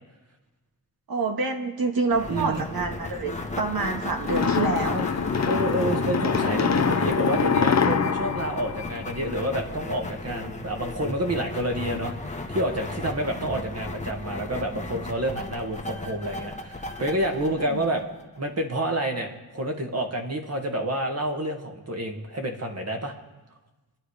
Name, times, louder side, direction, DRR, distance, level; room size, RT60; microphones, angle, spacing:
voice 1, 1.1-5.1 13.4-13.6 17.7-17.8, right 3 dB, 65° right, 3 dB, 2.0 m, -27 dB
sound 1, 2.1-18.6, left 2 dB, 20° left, 1.3 m, -35 dB
voice 2, 2.3-2.7 5.5-18.0 18.4-23.1, right 1 dB, 40° right, 2 dB, 2.0 m, -29 dB
sound 2, 4.2-9.6, left 6 dB, 45° left, 0.8 m, -25 dB
27.5 x 10.5 x 5.0 m, 1.1 s
wide cardioid pair, 150°, 38 cm